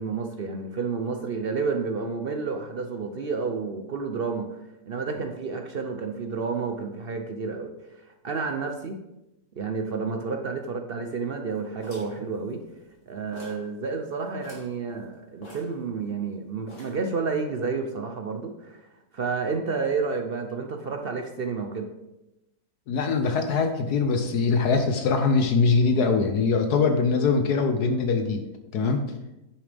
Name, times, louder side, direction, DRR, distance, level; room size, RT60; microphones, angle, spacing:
voice 1, 0.0-4.6 4.9-9.0 9.6-12.6 13.1-18.8 19.1-21.9, right 4 dB, 60° right, 4 dB, 0.5 m, -30 dB
sound 1, 11.8-13.0 13.3-13.7 14.0-14.1 14.4-14.8 15.4-16.3 16.7-17.1, left 1 dB, 45° left, 2.4 m, -46 dB
voice 2, 22.9-28.4 28.7-29.0, left 4 dB, 70° left, 6 dB, 1.3 m, -22 dB
9.6 x 7.0 x 3.4 m, 0.93 s
omnidirectional pair, 1.8 m